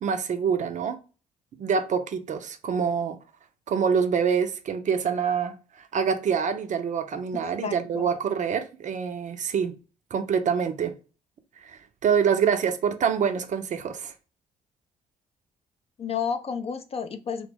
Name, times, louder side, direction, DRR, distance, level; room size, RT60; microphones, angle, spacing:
voice 1, 0.0-1.0 1.6-3.2 3.7-5.6 5.9-9.8 10.1-10.9 11.6-14.1, right 6 dB, 40° right, 0.4 m, -26 dB
voice 2, 7.6-8.1 16.0-17.5, left 6 dB, 35° left, 0.4 m, -31 dB
2.0 x 2.0 x 3.3 m
hypercardioid pair, 45°, 19 cm